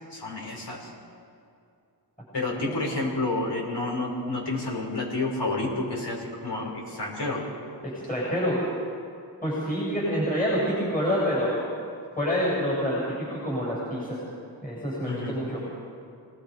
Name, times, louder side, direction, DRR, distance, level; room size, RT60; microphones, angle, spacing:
voice 1, 0.1-0.9 2.3-7.4 15.1-15.3, left 2 dB, 60° left, -3 dB, 6.2 m, -30 dB
voice 2, 7.8-8.6 9.4-11.6 12.1-14.2 14.6-15.6, equal, 20° left, -6 dB, 7.3 m, -27 dB
27.5 x 19.0 x 5.2 m, 2.5 s
wide cardioid pair, 100°, 46 cm